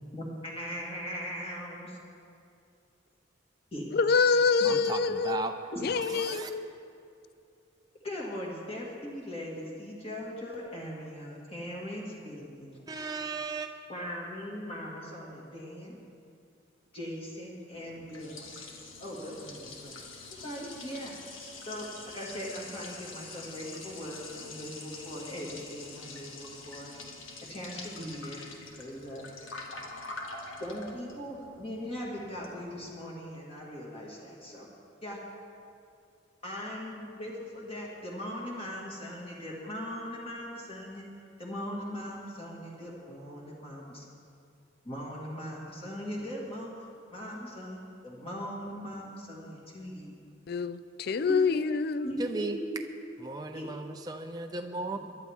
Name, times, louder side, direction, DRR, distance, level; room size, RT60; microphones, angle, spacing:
voice 1, 0.1-2.0 3.7-3.8 5.7-6.1 8.0-12.9 13.9-16.0 16.9-18.5 19.0-20.0 20.3-21.3 21.7-26.9 27.5-28.5 28.8-29.2 30.6-34.7 35.0-35.2 36.4-41.1 41.4-44.0 44.8-50.1 51.3-51.4 52.0-52.8 53.5-53.7, equal, 30° left, -4 dB, 1.9 m, -40 dB
voice 2, 3.9-5.5 5.8-6.7 50.5-52.1, left 5 dB, 50° left, 13 dB, 0.4 m, -26 dB
voice 3, 4.6-5.5 5.9-6.5 12.9-13.7 52.2-52.6 53.2-55.0, right 3 dB, 20° right, 4 dB, 0.5 m, -36 dB
Liquid, 17.7-32.9, left 3 dB, 80° left, 1.7 m, -45 dB
22.0 x 11.5 x 3.5 m, 2.5 s
head